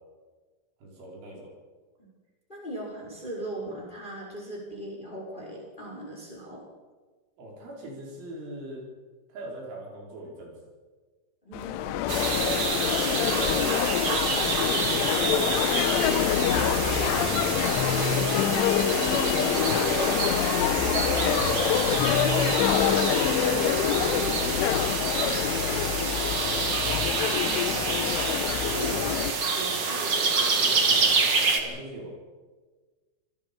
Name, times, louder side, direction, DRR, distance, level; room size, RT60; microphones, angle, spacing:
voice 1, 0.8-1.5 7.4-8.8 9.3-10.5 12.4-13.9 14.8-15.9 17.7-18.5 18.9-20.1 20.9-23.4 25.0-26.4 29.1-32.1, right 1 dB, 70° right, -2 dB, 7.6 m, -40 dB
voice 2, 2.5-6.7 11.4-12.0 16.8-17.6 27.3-28.3 28.7-29.2 29.5-30.1 30.6-31.3, right 1 dB, 10° left, -2 dB, 4.8 m, -39 dB
sound 1, 11.5-29.3, left 10 dB, 80° left, 3.3 m, -26 dB
Bird song in forest, 12.1-31.6, right 4 dB, 45° right, 1.7 m, -28 dB
sound 2, 16.1-24.6, left 2 dB, 55° left, 4.3 m, -33 dB
27.0 x 20.5 x 5.5 m, 1.4 s
omnidirectional pair, 5.8 m